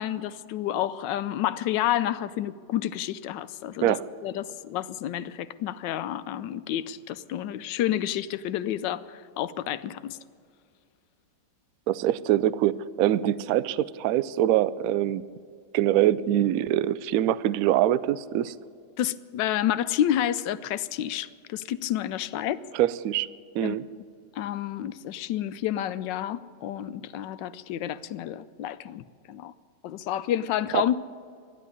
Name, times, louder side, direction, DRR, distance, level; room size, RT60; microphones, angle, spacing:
voice 1, 0.0-3.9 4.2-10.2 19.0-22.6 23.6-23.8 24.4-29.5 29.8-31.0, left 11 dB, 90° left, 1.3 m, -29 dB
voice 2, 11.9-15.2 15.7-18.5 22.7-23.3 23.5-23.9 30.7-31.0, right 12 dB, 70° right, 0.9 m, -24 dB
13.0 x 10.5 x 9.6 m
omnidirectional pair, 1.9 m